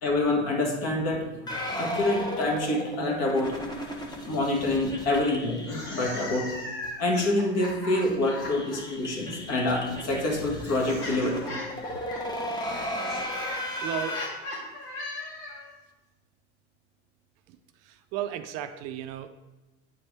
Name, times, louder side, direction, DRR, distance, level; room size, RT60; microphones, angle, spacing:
voice 1, 0.0-3.6 4.3-5.6 5.9-6.5 7.0-11.4, left 2 dB, 45° left, 0 dB, 1.9 m, -27 dB
sound 1, 1.5-6.6 6.8-6.9 7.2-7.3 7.6-14.3, equal, 10° left, 1.1 m, -35 dB
sound 2, 5.6-8.8 9.9-15.7, left 2 dB, 80° left, 2.4 m, -39 dB
voice 2, 13.8-14.2 17.5-17.6 17.8-19.3, right 11 dB, 50° right, 10 dB, 0.5 m, -34 dB
9.0 x 4.4 x 3.4 m, 1.1 s
hypercardioid pair, 100°, 35 cm